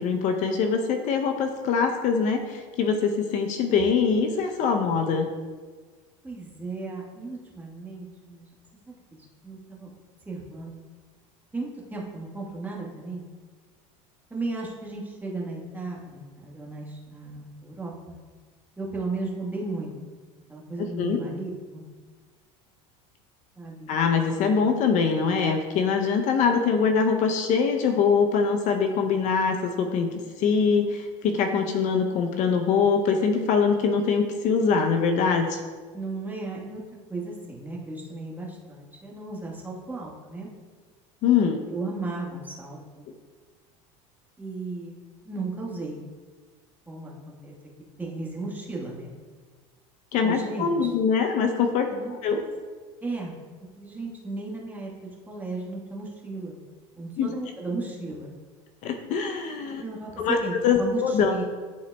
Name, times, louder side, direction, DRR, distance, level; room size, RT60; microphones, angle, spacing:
voice 1, 0.0-5.3 21.0-21.2 23.9-35.6 41.2-41.6 50.1-51.9 52.2-52.4 57.2-57.3 58.8-59.8 60.2-60.4 60.6-61.4, left 5 dB, 50° left, 5 dB, 0.6 m, -23 dB
voice 2, 6.2-8.5 8.9-9.0 9.4-9.9 10.2-10.8 11.5-13.3 14.3-18.2 18.8-20.1 20.5-21.8 23.6-24.2 35.9-36.8 37.1-40.5 41.7-43.0 44.4-44.9 45.2-46.0 46.9-47.5 48.0-49.1 50.2-50.9 51.9-52.2 53.0-53.3 53.8-56.6 56.9-58.3 59.8-61.4, right 3 dB, 10° right, -3 dB, 1.3 m, -35 dB
10.5 x 4.0 x 2.2 m, 1.4 s
supercardioid pair, 115°, 16 cm